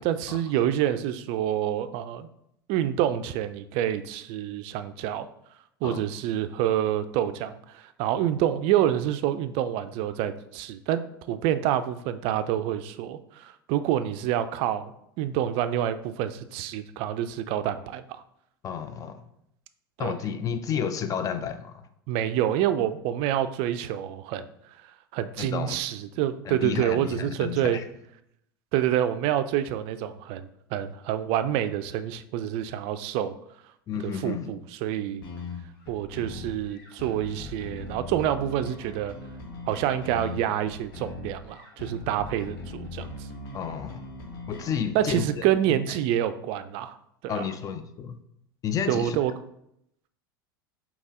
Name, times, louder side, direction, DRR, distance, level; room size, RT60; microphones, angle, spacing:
voice 1, 0.0-2.3 2.7-5.3 5.8-7.6 8.0-11.0 11.3-14.9 15.2-18.2 20.0-20.1 22.1-24.5 25.1-27.8 28.7-33.3 34.0-35.2 35.9-39.1 39.7-43.3 44.9-47.0 47.2-47.5 48.9-49.3, right 11 dB, 50° right, 0.4 m, -27 dB
voice 2, 18.6-19.2 20.0-21.9 25.4-25.8 26.4-27.9 33.9-34.5 43.5-44.1 44.5-45.5 45.9-46.0 47.3-48.2 48.6-49.2, left 7 dB, 30° left, 0.4 m, -31 dB
sound 1, 35.2-44.8, left 2 dB, 65° left, 1.0 m, -40 dB
3.9 x 2.9 x 3.6 m
hypercardioid pair, 85°, 12 cm